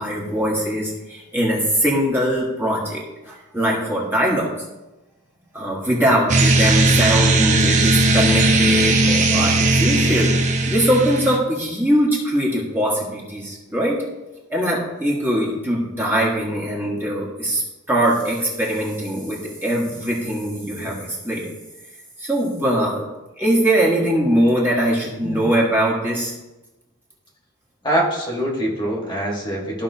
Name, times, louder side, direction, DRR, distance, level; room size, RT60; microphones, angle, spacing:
voice 1, 0.0-4.6 5.5-10.3 10.7-14.0 14.5-17.6 17.9-21.5 22.2-23.0 23.4-26.3, equal, 10° right, -4 dB, 1.4 m, -21 dB
sound 1, 6.3-11.4, right 2 dB, 35° right, 0.8 m, -17 dB
voice 2, 27.8-29.8, right 1 dB, 20° left, -2 dB, 1.5 m, -24 dB
13.5 x 5.3 x 2.8 m, 1.0 s
head